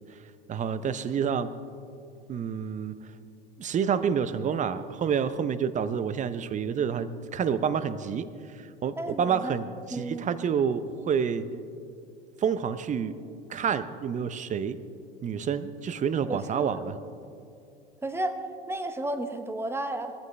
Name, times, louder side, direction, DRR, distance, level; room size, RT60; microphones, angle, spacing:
voice 1, 0.5-1.5 2.3-2.9 3.6-8.3 8.8-9.6 9.9-11.5 12.4-13.1 13.5-14.8 15.2-17.0, right 7 dB, 25° right, 14 dB, 0.7 m, -28 dB
voice 2, 9.0-9.6 9.9-10.3 16.3-16.8 18.0-18.4 18.7-20.1, right 1 dB, 10° right, 9 dB, 1.1 m, -32 dB
20.5 x 14.0 x 3.3 m, 2.4 s
hypercardioid pair, 85°, 29 cm